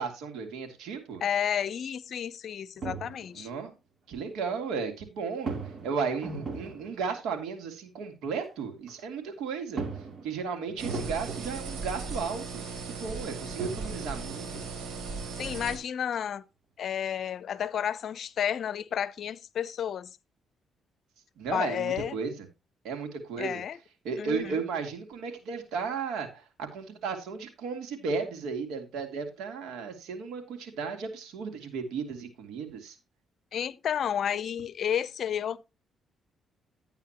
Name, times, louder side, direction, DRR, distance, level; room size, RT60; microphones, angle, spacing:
voice 1, 0.0-1.2 3.4-3.7 4.1-5.6 5.8-9.8 10.2-14.6 21.4-22.3 22.8-23.6 24.0-33.0, right 5 dB, 85° right, 2.8 m, -34 dB
voice 2, 1.2-3.5 15.4-16.4 16.8-20.1 21.5-22.2 23.4-23.8 24.2-24.6 33.5-35.6, left 9 dB, 60° left, 0.7 m, -31 dB
sound 1, 2.8-3.5 5.3-7.2 8.4-8.5 8.9-9.0 9.7-12.0 13.0-13.1 13.4-15.0, right 4 dB, 45° right, 2.9 m, -38 dB
sound 2, 10.8-15.8, right 4 dB, 60° right, 3.8 m, -37 dB
12.0 x 9.0 x 3.0 m
cardioid pair, 90°, 0 cm